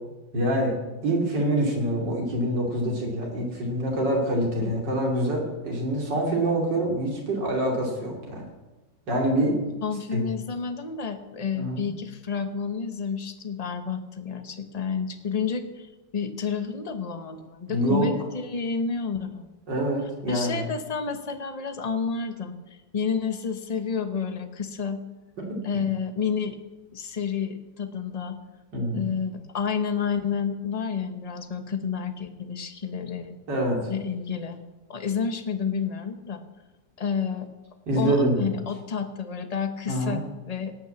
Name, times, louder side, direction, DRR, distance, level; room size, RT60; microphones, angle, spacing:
voice 1, 0.3-0.8 1.0-8.4 9.1-9.6 10.1-10.2 11.6-11.9 17.7-18.1 19.7-20.6 25.4-25.6 28.7-29.0 33.5-33.8 37.9-38.4 39.9-40.2, right 1 dB, 70° right, 0 dB, 3.5 m, -25 dB
voice 2, 9.8-19.5 20.3-22.5 22.9-25.0 25.6-26.6 26.9-28.4 28.9-33.4 33.9-34.6 34.9-36.4 37.0-37.5 37.9-40.7, left 6 dB, 30° left, 8 dB, 0.7 m, -30 dB
17.5 x 6.1 x 7.2 m, 1.1 s
omnidirectional pair, 2.0 m